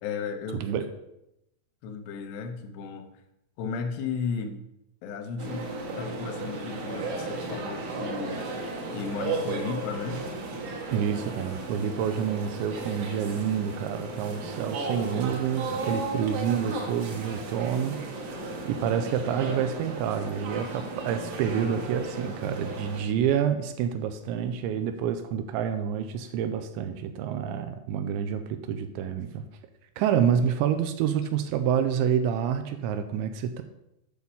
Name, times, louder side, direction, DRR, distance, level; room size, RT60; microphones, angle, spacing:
voice 1, 0.0-0.7 1.8-3.1 3.6-4.6 5.0-8.5 8.9-10.2 30.3-30.4, left 5 dB, 75° left, 7 dB, 2.8 m, -34 dB
sound 1, 5.4-23.0, right 3 dB, 60° right, 2.9 m, -35 dB
voice 2, 10.9-18.0 18.7-29.4 30.0-33.6, right 8 dB, 85° right, 8 dB, 2.8 m, -28 dB
8.6 x 6.2 x 5.5 m, 0.84 s
omnidirectional pair, 5.4 m